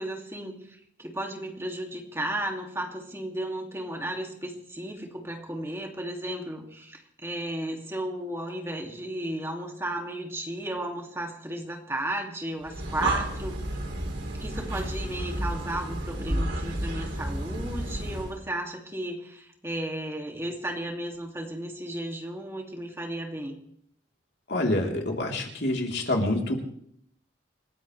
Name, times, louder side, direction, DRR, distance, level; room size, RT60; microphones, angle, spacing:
voice 1, 0.0-13.6 14.4-23.6, right 1 dB, 15° right, 1 dB, 2.5 m, -34 dB
Breathing, 12.6-18.4, right 1 dB, 85° right, 4.1 m, -31 dB
voice 2, 24.5-26.6, left 1 dB, 65° left, 0 dB, 3.6 m, -27 dB
28.0 x 15.5 x 3.3 m, 0.66 s
head